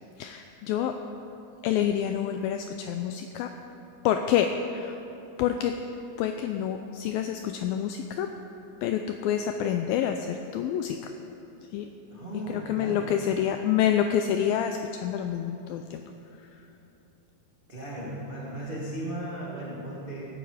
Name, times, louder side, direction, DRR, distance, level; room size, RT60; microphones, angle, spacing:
voice 1, 0.2-1.0 1.6-3.5 4.0-5.0 5.4-5.8 6.2-8.3 8.8-11.1 11.7-11.9 12.3-16.0 16.4-16.6, left 9 dB, 85° left, 6 dB, 2.1 m, -28 dB
voice 2, 12.1-13.1 17.7-20.3, right 1 dB, 50° right, -5 dB, 0.6 m, -36 dB
16.5 x 10.5 x 5.0 m, 2.9 s
omnidirectional pair, 4.7 m